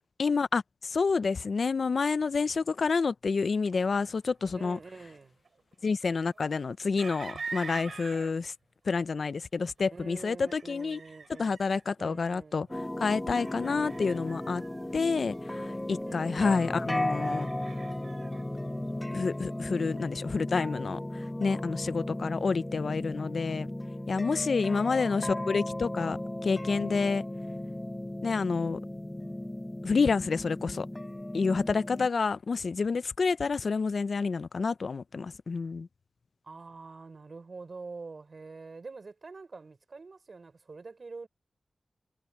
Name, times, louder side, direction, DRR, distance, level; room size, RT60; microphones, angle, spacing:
voice 1, 0.2-4.8 5.8-8.5 8.9-11.0 11.4-12.7 13.0-14.6 14.9-17.5 19.1-23.7 24.1-26.2 26.4-27.2 28.2-28.8 29.8-30.9 31.3-35.9, left 4 dB, 75° left, 0.5 m, -29 dB
sound 1, 3.6-4.7 5.5-8.3 9.6-10.0 10.5-11.8 12.6-14.9 15.2-16.0 16.3-18.4, right 4 dB, 80° right, 3.2 m, -45 dB
voice 2, 4.5-5.4 9.9-11.6 12.0-12.7 16.1-17.0 24.6-25.4 36.4-41.3, right 4 dB, 65° right, 5.9 m, -46 dB
sound 2, 12.7-32.1, left 1 dB, 15° left, 1.0 m, -36 dB
wide cardioid pair, 65°, 0 cm